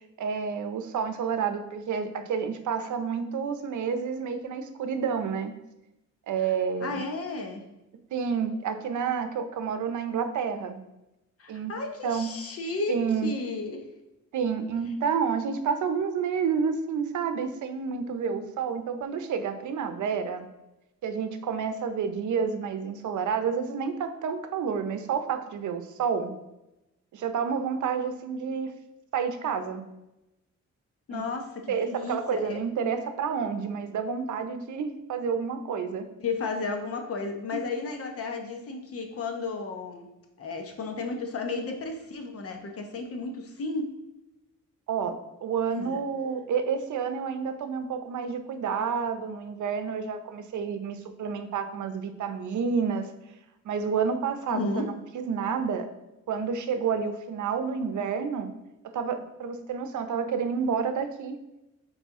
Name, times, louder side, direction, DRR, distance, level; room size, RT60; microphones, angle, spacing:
voice 1, 0.2-5.5 6.3-7.0 8.1-10.8 11.5-11.8 12.0-12.3 12.9-13.3 14.3-20.5 21.0-26.3 27.1-28.7 29.1-29.8 31.1-31.3 31.7-36.1 44.9-53.1 53.6-54.8 55.1-55.9 56.3-58.5 58.8-61.4, right 6 dB, 80° right, 9 dB, 0.7 m, -29 dB
voice 2, 6.8-7.6 11.4-12.9 13.2-13.9 31.1-32.6 36.2-40.1 40.4-43.8 45.7-46.0 54.5-54.9, left 3 dB, 50° left, 4 dB, 0.9 m, -33 dB
8.2 x 3.4 x 3.6 m, 0.95 s
wide cardioid pair, 165°, 29 cm